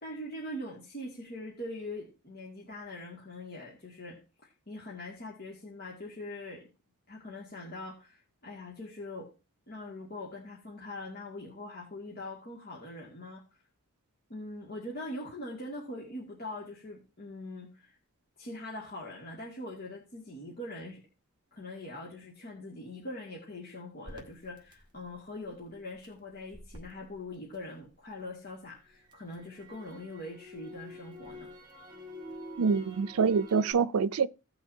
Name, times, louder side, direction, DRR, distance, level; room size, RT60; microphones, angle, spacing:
voice 1, 0.0-6.7 7.1-9.3 9.7-13.4 14.3-18.0 18.4-21.0 21.5-31.5, left 1 dB, 45° left, 2.2 m, -42 dB
Crackle, 24.1-28.2 28.6-33.7, equal, 20° right, 2.0 m, -49 dB
voice 2, 32.6-34.3, right 5 dB, 90° right, 0.5 m, -26 dB
17.0 x 5.9 x 2.7 m
head